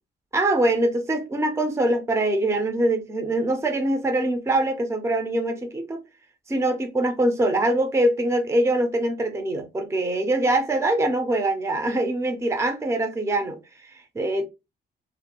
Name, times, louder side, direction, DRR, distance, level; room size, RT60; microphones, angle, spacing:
voice 1, 0.3-6.0 6.5-13.9 14.1-14.4, right 1 dB, 15° right, 0.6 m, -23 dB
2.5 x 2.4 x 2.9 m
cardioid pair, 90°, 20 cm